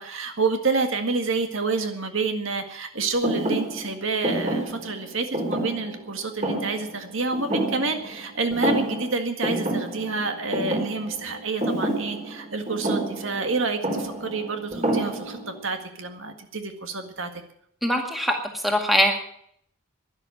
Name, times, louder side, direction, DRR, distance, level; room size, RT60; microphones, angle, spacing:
voice 1, 0.0-17.3, right 3 dB, 65° right, 6 dB, 1.8 m, -28 dB
Thump thud, 3.2-8.2 8.5-9.1 9.4-15.5, right 1 dB, 30° right, 3.7 m, -28 dB
voice 2, 17.8-19.2, equal, ahead, 2 dB, 2.0 m, -22 dB
12.0 x 11.0 x 9.0 m, 0.68 s
head